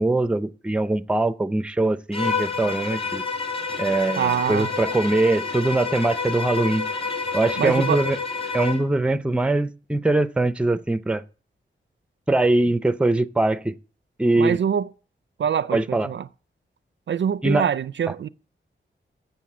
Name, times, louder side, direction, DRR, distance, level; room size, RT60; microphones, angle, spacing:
voice 1, 0.0-3.2 3.8-6.9 7.3-8.2 8.5-11.2 12.3-13.7 14.2-14.6 15.7-16.1 17.4-17.7, right 2 dB, 5° right, 0.5 m, -22 dB
Bowed string instrument, 2.1-8.9, left 4 dB, 25° left, 2.1 m, -29 dB
voice 2, 4.2-4.7 7.6-8.0 14.3-14.9 15.4-16.3 17.1-18.3, right 8 dB, 65° right, 0.4 m, -24 dB
7.6 x 7.1 x 8.3 m
wide cardioid pair, 150°, 21 cm